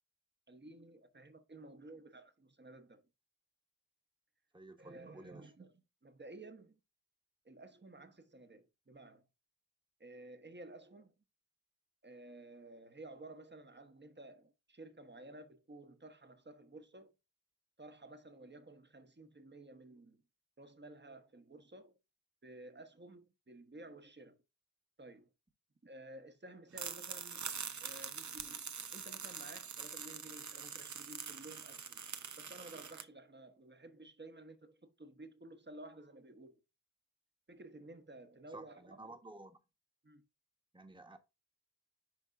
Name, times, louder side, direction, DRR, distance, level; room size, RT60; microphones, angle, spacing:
voice 1, 0.5-3.0 4.8-5.7 6.0-6.8 7.4-9.2 10.0-11.1 12.0-17.1 17.8-20.2 20.6-21.9 22.4-24.4 25.0-25.3 25.8-27.4 27.8-32.0 32.4-36.6 37.5-39.1 40.0-40.2, right 2 dB, 35° right, 1.2 m, -54 dB
voice 2, 4.5-5.5 38.5-39.6 40.7-41.2, right 2 dB, 15° right, 1.3 m, -53 dB
sound 1, 26.7-33.0, right 6 dB, 60° right, 0.8 m, -44 dB
11.0 x 3.6 x 2.6 m
cardioid pair, 40°, 33 cm